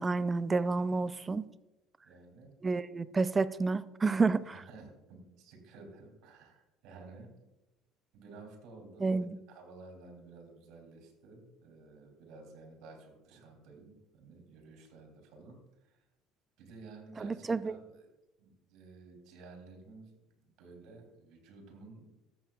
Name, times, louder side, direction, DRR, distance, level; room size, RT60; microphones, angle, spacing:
voice 1, 0.0-1.5 2.6-4.6 9.0-9.3 17.2-17.8, right 4 dB, 25° right, 15 dB, 0.5 m, -30 dB
voice 2, 2.0-2.5 4.5-7.4 8.1-16.0 16.6-18.1 18.4-20.1 20.4-22.1, right 3 dB, 65° right, 1 dB, 3.3 m, -53 dB
13.5 x 8.3 x 2.4 m, 0.95 s
hypercardioid pair, 75°, 0 cm